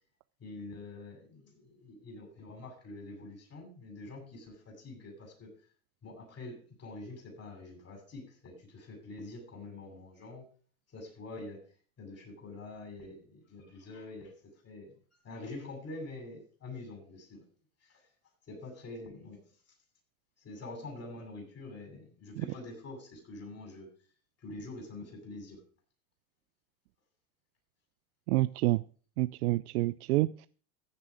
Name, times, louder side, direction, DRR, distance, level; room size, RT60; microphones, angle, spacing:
voice 1, 0.4-5.5 6.0-10.5 10.9-11.6 12.0-14.9 15.2-17.4 17.8-18.0 18.5-19.4 20.4-23.9 24.4-25.6, left 2 dB, 35° left, 2 dB, 7.9 m, -46 dB
voice 2, 28.3-28.8 29.2-30.5, right 18 dB, 85° right, 15 dB, 0.6 m, -28 dB
15.0 x 7.6 x 5.0 m, 0.41 s
supercardioid pair, 100°, 43 cm